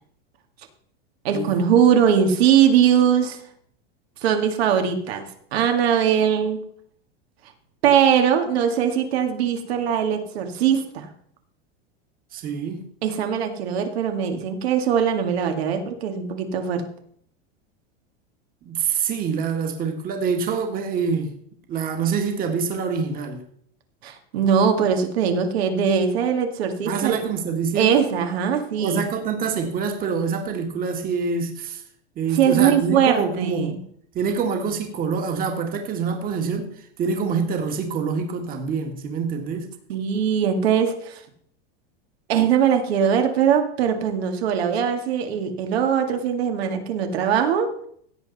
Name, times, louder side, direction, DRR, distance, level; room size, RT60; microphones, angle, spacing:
voice 1, 1.2-3.4 4.2-5.3 5.5-6.6 7.8-11.1 13.0-16.9 24.0-27.2 27.8-29.0 32.3-33.8 39.9-41.2 42.3-47.7, right 8 dB, 75° right, 2.1 m, -21 dB
voice 2, 12.3-12.8 18.6-21.3 21.7-23.4 26.8-28.0 28.8-31.8 32.2-33.8 34.1-39.7, right 5 dB, 30° right, 1.9 m, -26 dB
16.5 x 7.8 x 4.1 m
supercardioid pair, 150°, 31 cm